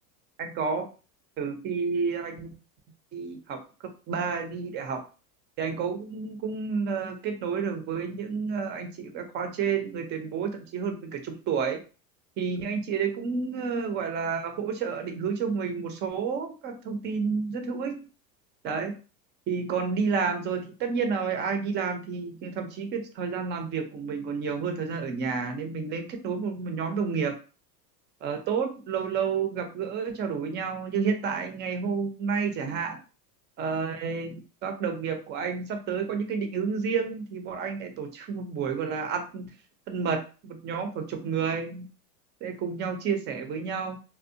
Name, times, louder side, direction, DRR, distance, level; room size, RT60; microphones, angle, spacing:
voice 1, 0.4-0.9 1.4-2.5 3.1-3.6 4.1-5.0 5.6-11.8 12.4-17.9 18.6-18.9 19.5-27.3 28.2-33.0 33.6-39.5 39.9-41.9 42.4-44.0, right 5 dB, 25° right, 6 dB, 0.3 m, -30 dB
2.6 x 2.0 x 2.6 m, 0.35 s
hypercardioid pair, 105°, 49 cm